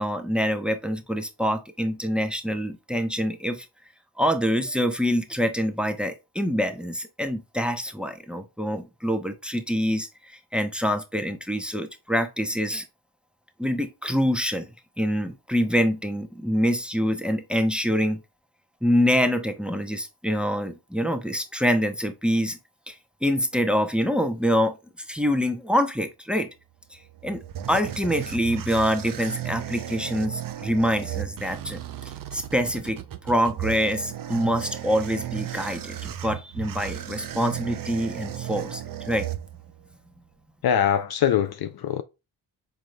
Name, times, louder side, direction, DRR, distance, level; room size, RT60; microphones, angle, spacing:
voice 1, 0.0-3.6 4.2-10.1 10.5-12.8 13.6-14.7 15.0-18.2 18.8-22.6 22.9-23.0 23.2-24.8 25.1-26.5 27.2-27.4 27.7-31.8 32.3-39.3, equal, ahead, 0.8 m, -25 dB
sound 1, 26.9-39.9, right 11 dB, 45° right, 0.6 m, -35 dB
voice 2, 40.6-42.0, left 9 dB, 55° left, 0.6 m, -23 dB
4.8 x 3.7 x 2.2 m
supercardioid pair, 50°, 46 cm